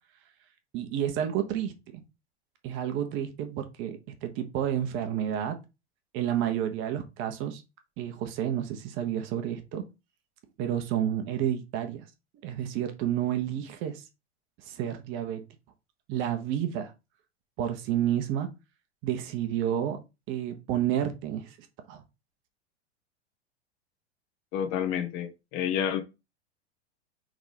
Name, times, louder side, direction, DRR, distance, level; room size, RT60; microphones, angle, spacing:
voice 1, 0.7-2.0 2.6-5.6 6.1-7.6 8.0-9.8 10.6-12.1 12.4-14.0 14.7-15.4 16.1-16.9 17.6-18.5 19.0-20.0 20.3-21.5 21.9-22.0, right 10 dB, 35° right, 1.1 m, -30 dB
voice 2, 24.5-26.0, left 9 dB, 40° left, 1.2 m, -29 dB
5.1 x 3.9 x 5.0 m
figure-of-eight pair, 90°, 34 cm